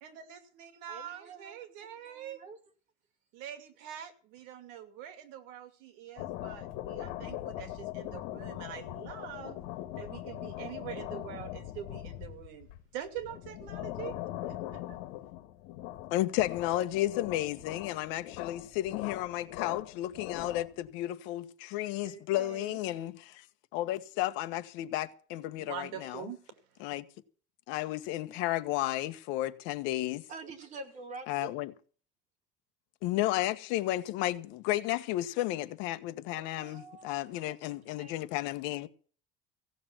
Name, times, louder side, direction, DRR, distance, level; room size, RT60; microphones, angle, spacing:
voice 1, 0.0-2.4 3.3-9.6 10.0-14.2 14.4-15.0 17.3-17.4 22.0-22.8 25.6-26.4, right 10 dB, 85° right, 2.5 m, -44 dB
voice 2, 0.9-2.6 30.3-31.6 36.3-38.1, right 3 dB, 35° right, 2.6 m, -48 dB
sound 1, 6.2-20.9, left 14 dB, 85° left, 1.7 m, -41 dB
voice 3, 16.1-23.4 23.7-26.3 26.8-27.0 27.7-30.2 31.3-31.7 33.0-38.9, left 15 dB, 70° left, 1.3 m, -33 dB
16.0 x 6.8 x 9.1 m
cardioid pair, 175°, 21 cm